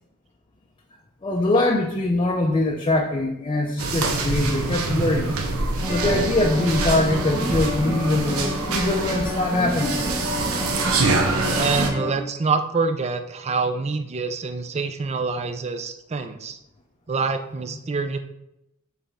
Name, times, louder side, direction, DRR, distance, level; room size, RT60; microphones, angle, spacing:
voice 1, 1.2-5.3 5.8-10.0, left 2 dB, 25° left, 0 dB, 0.5 m, -23 dB
sound 1, 3.8-11.9, right 3 dB, 80° right, 0.8 m, -25 dB
sound 2, 5.8-12.1, left 1 dB, 15° right, 0.8 m, -30 dB
voice 2, 11.5-16.6 17.1-18.2, right 4 dB, 30° right, 8 dB, 0.5 m, -26 dB
6.9 x 4.1 x 3.5 m, 0.85 s
head